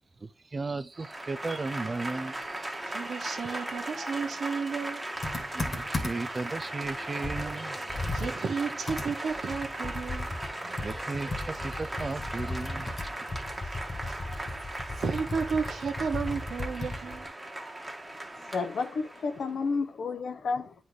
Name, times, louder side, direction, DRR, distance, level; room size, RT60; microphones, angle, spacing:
voice 1, 0.5-2.3 5.5-7.8 10.8-12.9, right 3 dB, 35° right, 0.4 m, -35 dB
Applause / Crowd, 1.0-19.5, right 1 dB, 15° right, 1.4 m, -38 dB
voice 2, 2.8-5.0 8.1-10.3 14.0-14.2 14.6-17.3, right 5 dB, 70° right, 1.0 m, -33 dB
Computer keyboard, 5.2-6.4 6.8-6.9 7.2-10.5 10.8-17.3, left 2 dB, 40° left, 1.5 m, -36 dB
voice 3, 18.5-20.7, left 4 dB, 70° left, 0.8 m, -31 dB
9.3 x 4.1 x 3.2 m
wide cardioid pair, 120°, 0 cm